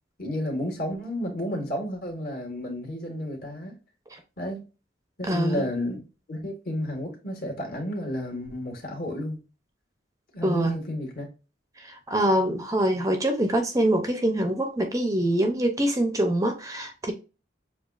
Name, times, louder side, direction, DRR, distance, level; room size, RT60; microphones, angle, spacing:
voice 1, 0.2-3.8 4.4-4.7 5.2-9.4 10.3-11.3, left 1 dB, 50° left, 1.7 m, -32 dB
voice 2, 5.3-5.6 10.4-10.8 12.1-17.1, right 1 dB, 20° right, 0.6 m, -24 dB
7.0 x 2.4 x 2.4 m
head